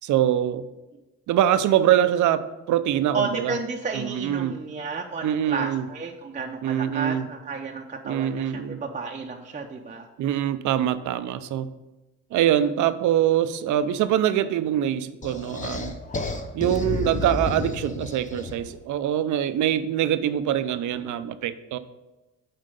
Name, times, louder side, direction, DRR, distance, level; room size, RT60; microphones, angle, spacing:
voice 1, 0.0-0.6 1.3-3.6 3.9-4.5 5.2-5.8 6.6-7.3 8.0-8.8 10.2-11.7 12.3-16.0 16.5-21.8, right 11 dB, 75° right, 13 dB, 0.6 m, -24 dB
voice 2, 3.1-10.1 12.6-12.7, right 4 dB, 25° right, 2 dB, 0.6 m, -32 dB
sound 1, 15.2-18.8, left 3 dB, 25° left, 0.8 m, -31 dB
7.6 x 4.4 x 5.2 m, 1.1 s
cardioid pair, 90°, 30 cm